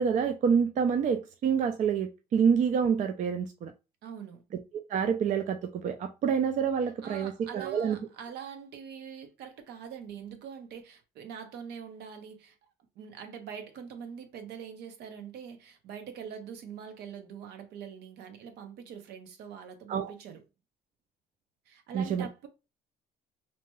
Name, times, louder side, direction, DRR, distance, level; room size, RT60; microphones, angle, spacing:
voice 1, 0.0-3.7 4.9-8.0 19.9-20.1 21.9-22.3, right 7 dB, 45° right, 0.4 m, -27 dB
voice 2, 4.0-4.4 7.0-12.6 13.0-20.4 21.7-22.5, right 7 dB, 75° right, 0.8 m, -43 dB
2.8 x 2.2 x 3.0 m
cardioid pair, 110°, 17 cm